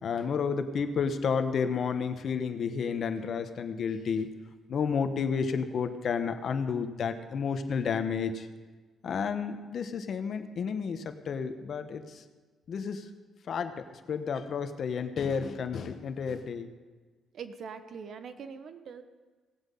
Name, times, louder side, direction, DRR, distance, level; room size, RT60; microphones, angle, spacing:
voice 1, 0.0-4.3 4.7-8.5 9.0-12.2 12.7-13.1 13.5-16.7, left 6 dB, 55° left, 9 dB, 1.1 m, -31 dB
voice 2, 17.3-19.0, right 6 dB, 60° right, 10 dB, 1.0 m, -42 dB
17.5 x 8.0 x 5.5 m, 1.4 s
cardioid pair, 90°, 0 cm